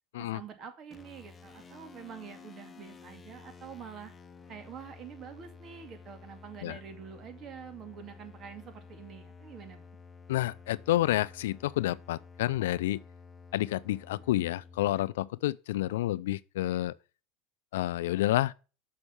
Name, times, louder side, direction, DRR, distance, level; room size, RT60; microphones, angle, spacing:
voice 1, 0.2-4.1 4.5-9.9, right 7 dB, 40° right, 2.2 m, -46 dB
sound 1, 0.9-15.0, left 5 dB, 20° left, 1.2 m, -52 dB
voice 2, 10.3-13.0 13.5-16.9 17.7-18.5, left 15 dB, 80° left, 0.4 m, -29 dB
6.5 x 6.3 x 7.0 m
hypercardioid pair, 105°, 0 cm